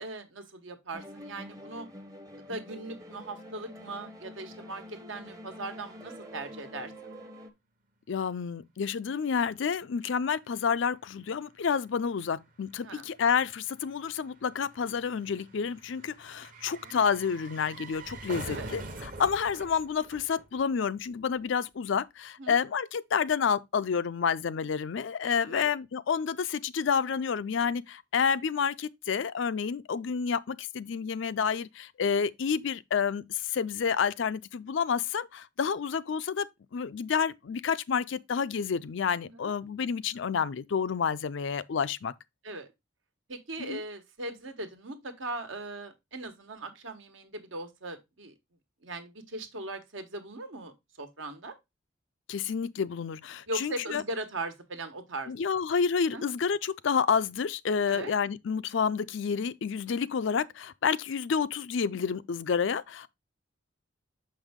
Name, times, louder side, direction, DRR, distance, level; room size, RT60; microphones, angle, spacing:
voice 1, 0.0-1.9 2.5-6.9 12.8-13.1 16.8-17.0 18.4-18.7 22.4-22.6 25.5-25.7 39.2-39.5 42.4-42.7 43.3-48.3 48.8-51.5 53.5-55.6 56.1-56.3 57.9-58.1, right 2 dB, 75° right, 1.3 m, -39 dB
sound 1, 0.9-7.5, equal, 15° right, 0.7 m, -47 dB
voice 2, 8.1-42.1 43.6-43.8 52.3-54.0 55.3-63.1, left 6 dB, 65° left, 0.4 m, -29 dB
sound 2, 10.4-10.5 10.6-21.1 21.3-21.4, right 2 dB, 40° right, 1.0 m, -46 dB
6.4 x 5.4 x 3.5 m
head